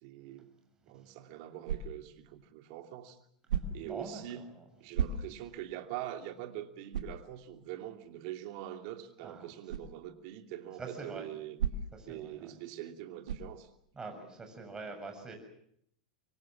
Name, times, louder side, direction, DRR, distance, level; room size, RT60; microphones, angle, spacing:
voice 1, 0.0-0.5 0.9-3.2 3.7-4.5 4.8-11.6 12.1-13.7, right 12 dB, 60° right, 7 dB, 2.9 m, -43 dB
sound 1, 1.6-2.2 3.5-4.0 4.9-5.6 6.1-6.2 6.9-7.3 9.7-9.9 11.6-12.1 13.2-13.6, right 7 dB, 80° right, 2.1 m, -34 dB
voice 2, 3.8-4.6 5.2-5.3 9.2-9.5 10.8-11.3 11.9-12.5 14.0-15.4, right 3 dB, 20° right, 4 dB, 7.1 m, -44 dB
25.5 x 24.0 x 7.4 m, 0.70 s
hypercardioid pair, 95°, 4 cm